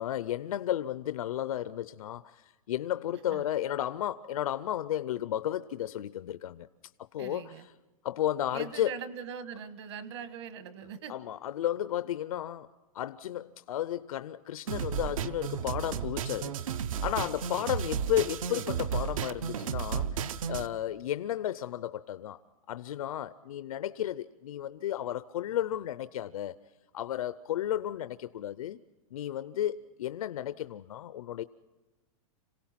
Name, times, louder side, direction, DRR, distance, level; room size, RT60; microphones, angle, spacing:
voice 1, 0.0-6.7 7.1-7.7 8.0-9.0 11.1-12.7 12.9-16.5 17.0-20.2 20.5-22.4 22.7-26.6 26.9-28.8 29.1-31.4, left 11 dB, 70° left, 13 dB, 0.6 m, -33 dB
voice 2, 7.2-7.6 8.5-11.1, right 7 dB, 50° right, 12 dB, 1.4 m, -41 dB
sound 1, 14.7-20.7, right 7 dB, 65° right, 0.8 m, -33 dB
27.0 x 17.5 x 5.8 m, 1.2 s
supercardioid pair, 180°, 19 cm